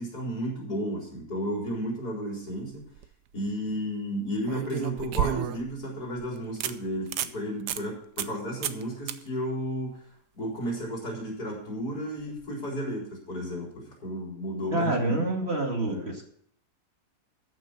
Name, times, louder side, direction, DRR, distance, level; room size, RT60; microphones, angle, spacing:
voice 1, 0.0-2.8 3.3-10.0 10.3-15.2 15.9-16.1, equal, 75° left, -2 dB, 4.7 m, -33 dB
sound 1, 2.7-3.1 4.5-5.8 6.2-6.3 6.6-6.7 7.1-7.3 7.7-7.8 8.2-8.4 8.6-8.8 9.1-9.2 12.3-12.4, right 11 dB, 85° right, 1.3 m, -31 dB
voice 2, 14.7-16.3, right 2 dB, 40° right, 1 dB, 2.4 m, -27 dB
14.0 x 6.1 x 5.9 m, 0.65 s
omnidirectional pair, 1.7 m